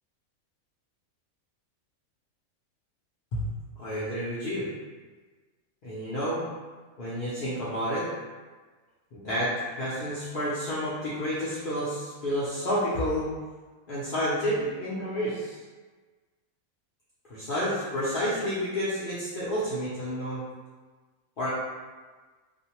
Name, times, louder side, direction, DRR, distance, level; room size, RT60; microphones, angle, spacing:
voice 1, 3.8-4.7 5.8-6.4 7.0-8.1 9.1-13.3 13.9-15.6 17.3-20.4 21.4-21.5, equal, 70° left, -10 dB, 0.5 m, -30 dB
2.5 x 2.0 x 2.8 m, 1.4 s
omnidirectional pair, 1.5 m